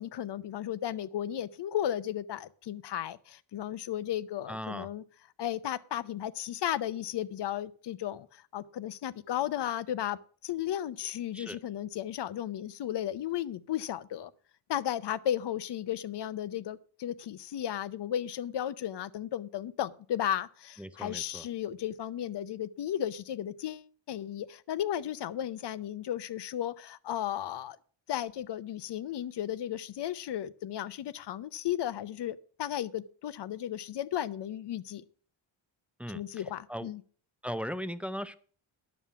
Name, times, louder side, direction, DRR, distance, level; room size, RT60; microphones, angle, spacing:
voice 1, 0.0-5.0 5.4-10.2 10.4-14.3 14.7-27.8 28.1-35.0 36.1-37.0, left 11 dB, 60° left, 0.7 m, -34 dB
voice 2, 4.5-4.9 11.3-11.6 20.8-21.5 36.0-36.4 36.7-36.9 37.4-38.4, equal, 5° right, 0.4 m, -38 dB
11.5 x 7.1 x 5.9 m
wide cardioid pair, 155°, 47 cm